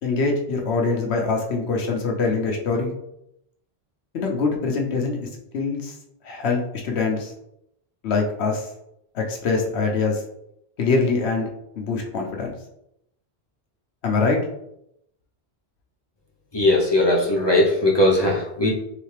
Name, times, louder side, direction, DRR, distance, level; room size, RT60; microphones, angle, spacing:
voice 1, 0.0-3.0 4.1-5.3 5.5-5.9 6.2-7.3 8.0-8.7 9.1-10.2 10.8-11.5 11.8-12.5 14.0-14.4, left 4 dB, 80° left, 1 dB, 1.0 m, -23 dB
voice 2, 16.5-18.7, left 1 dB, 25° left, -3 dB, 0.8 m, -19 dB
4.0 x 3.2 x 3.2 m, 0.79 s
omnidirectional pair, 1.1 m